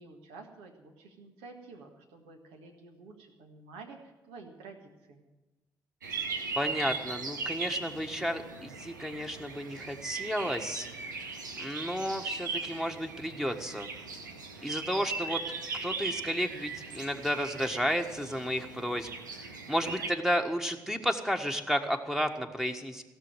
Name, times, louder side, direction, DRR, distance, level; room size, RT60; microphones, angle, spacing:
voice 1, 0.0-5.3, right 4 dB, 70° right, 3 dB, 1.7 m, -50 dB
sound 1, 6.0-20.1, right 4 dB, 90° right, 0.8 m, -39 dB
voice 2, 6.6-10.9 11.6-13.9 14.6-15.4 15.8-19.1 19.7-23.0, equal, 5° right, 5 dB, 1.5 m, -32 dB
16.5 x 7.0 x 9.2 m, 1.1 s
figure-of-eight pair, 45°, 10 cm